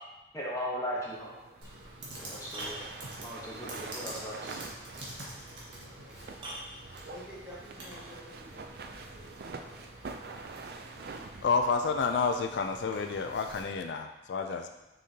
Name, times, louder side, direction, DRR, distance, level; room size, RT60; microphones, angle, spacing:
voice 1, 0.3-1.3 2.2-2.8 3.2-4.4, equal, 20° left, -6 dB, 1.1 m, -37 dB
sound 1, 1.1-13.9, right 4 dB, 55° right, 0.4 m, -47 dB
Computer keyboard, 1.6-13.6, right 1 dB, 80° right, 1.6 m, -47 dB
voice 2, 2.0-2.4 5.7-6.3 7.0-8.8, equal, 10° right, -10 dB, 2.1 m, -50 dB
sound 2, 2.0-3.5 5.5-5.6 6.3-7.7 9.0-9.1, right 1 dB, 30° right, 0.9 m, -45 dB
voice 3, 11.4-14.7, left 4 dB, 70° left, 6 dB, 0.4 m, -29 dB
6.4 x 5.2 x 2.8 m, 1.0 s
head